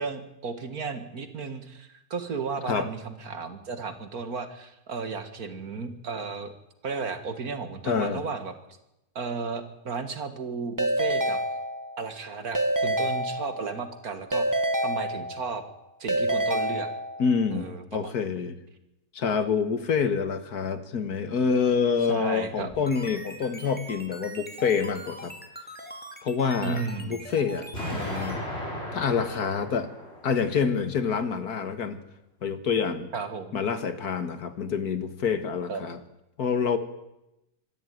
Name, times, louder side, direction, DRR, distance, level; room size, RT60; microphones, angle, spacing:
voice 1, 0.0-6.5 6.8-8.5 9.2-11.4 12.0-15.6 16.0-16.9 17.5-18.1 22.1-22.7 26.6-27.2 33.1-33.6 35.7-35.8, right 4 dB, 60° right, 9 dB, 2.2 m, -34 dB
voice 2, 7.8-8.2 17.2-18.6 19.1-25.3 26.2-28.4 28.9-29.9 30.2-32.0 32.4-33.1 33.5-36.0 36.4-36.8, left 6 dB, 65° left, 10 dB, 2.0 m, -27 dB
Keyboard (musical) / Ringtone, 10.8-12.1 12.5-13.9 14.3-15.7 16.1-17.4, right 1 dB, 15° right, 1.0 m, -27 dB
sound 1, 22.6-28.4, equal, 5° left, 2.6 m, -42 dB
Explosion, 27.7-30.7, equal, 35° left, 6.3 m, -35 dB
25.0 x 13.0 x 9.4 m, 0.90 s
omnidirectional pair, 1.8 m